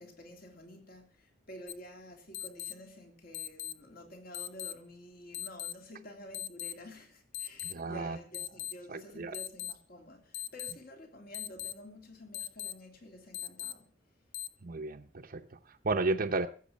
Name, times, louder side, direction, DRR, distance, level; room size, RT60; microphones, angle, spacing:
voice 1, 0.0-13.9, equal, 55° left, 3.2 m, -50 dB
sound 1, 1.7-1.8 2.3-2.7 3.3-3.7 4.3-4.7 5.3-5.7 6.3-6.7 7.3-7.7 8.3-8.7 9.3-9.7 10.3-10.7 11.3-11.7 12.3-12.7 13.3-13.7 14.3-14.5, left 11 dB, 70° left, 0.7 m, -38 dB
voice 2, 7.6-8.2 8.9-9.4 14.6-16.5, right 3 dB, 50° right, 0.7 m, -33 dB
15.5 x 7.6 x 7.3 m
head